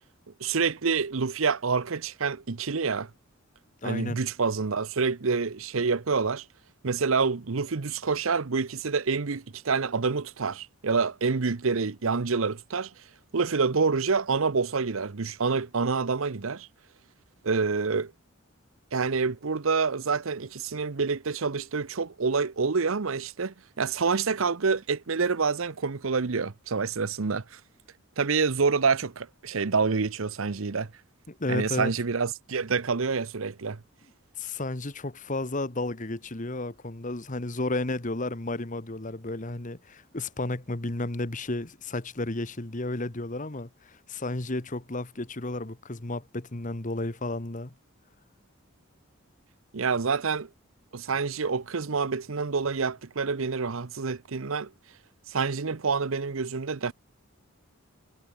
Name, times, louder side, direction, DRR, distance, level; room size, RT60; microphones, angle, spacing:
voice 1, 0.4-3.1 3.8-6.4 6.8-12.9 13.3-16.7 17.4-18.1 18.9-27.6 28.2-30.9 31.5-33.8 49.7-50.5 50.9-54.7 55.3-56.9, right 4 dB, 75° right, 0.8 m, -27 dB
voice 2, 3.8-4.2 31.3-31.9 34.4-47.7, left 2 dB, 35° left, 1.4 m, -32 dB
head